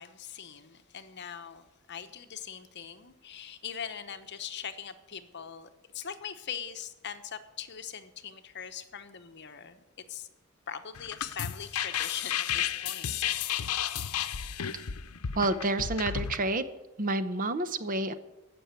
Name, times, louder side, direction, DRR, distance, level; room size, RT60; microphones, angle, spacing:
voice 1, 0.0-9.8 10.1-10.3 10.7-13.1, left 8 dB, 50° left, 9 dB, 0.9 m, -41 dB
sound 1, 10.9-16.4, left 9 dB, 90° left, 0.7 m, -32 dB
voice 2, 15.3-16.6 17.0-18.1, right 2 dB, 40° right, 12 dB, 0.7 m, -29 dB
15.5 x 6.2 x 8.2 m, 1.1 s
head